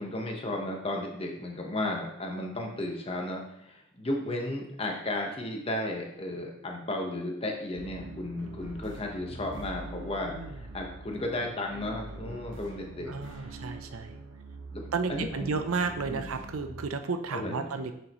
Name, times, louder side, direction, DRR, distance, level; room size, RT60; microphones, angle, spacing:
voice 1, 0.0-13.5 14.7-15.6 16.1-16.3 17.3-17.6, left 1 dB, 25° left, 1 dB, 1.1 m, -34 dB
sound 1, 7.7-16.8, right 2 dB, 60° right, 1.0 m, -44 dB
voice 2, 13.1-14.2 14.9-17.9, right 4 dB, 85° right, 8 dB, 0.6 m, -32 dB
7.3 x 6.4 x 3.0 m, 0.76 s
head